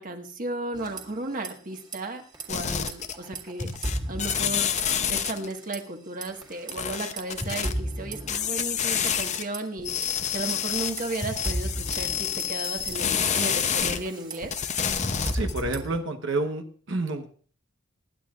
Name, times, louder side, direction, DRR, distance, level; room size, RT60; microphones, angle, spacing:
voice 1, 0.0-2.2 2.5-4.7 5.1-14.5, right 2 dB, 40° right, 4 dB, 1.6 m, -35 dB
sound 1, 0.7-1.5 1.8-2.0 2.3-5.0 5.3-5.8 6.2-9.6 10.0-16.0, right 1 dB, 20° right, 2.0 m, -35 dB
sound 2, 2.5-3.4 3.6-5.5 6.7-7.7 8.3-9.4 9.8-14.0 14.4-15.7, left 8 dB, 35° left, 0.7 m, -28 dB
voice 2, 15.3-17.3, right 2 dB, 65° right, 5 dB, 1.1 m, -29 dB
24.0 x 10.5 x 2.5 m, 0.43 s
head